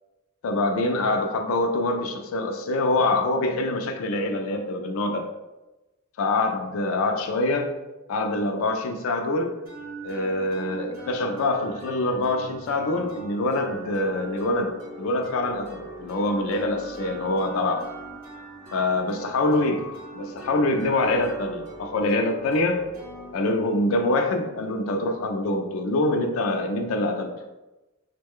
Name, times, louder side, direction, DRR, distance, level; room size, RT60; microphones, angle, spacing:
voice 1, 0.4-5.3 6.2-7.7 8.1-9.5 10.0-17.8 18.7-19.8 20.1-22.8 23.3-27.3, left 2 dB, 70° left, 4 dB, 0.4 m, -25 dB
sound 1, 9.6-25.3, right 3 dB, 40° right, 1.5 m, -41 dB
3.1 x 2.1 x 3.5 m, 1.1 s
head